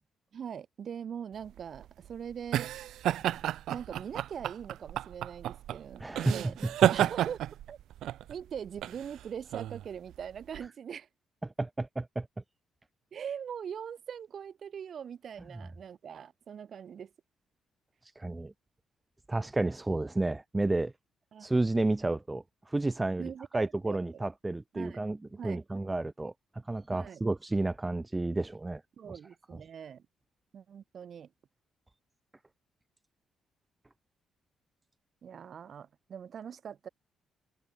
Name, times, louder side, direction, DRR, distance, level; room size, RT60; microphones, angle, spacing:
voice 1, 0.3-2.7 3.7-6.0 6.3-7.4 7.7-7.8 8.3-11.1 13.1-17.1 21.3-21.5 23.2-24.2 24.7-25.0 25.3-25.6 26.9-27.2 29.0-30.0 30.5-31.3 35.2-36.9, right 8 dB, 55° right, 7.4 m, -42 dB
sound 1, 1.4-10.6, right 12 dB, 80° right, 0.9 m, -32 dB
voice 2, 6.0-6.4 11.4-12.3 18.1-18.5 19.3-20.9 21.4-25.2 25.4-26.3 26.6-28.8, right 2 dB, 15° right, 1.5 m, -31 dB
cardioid pair, 90°, 0 cm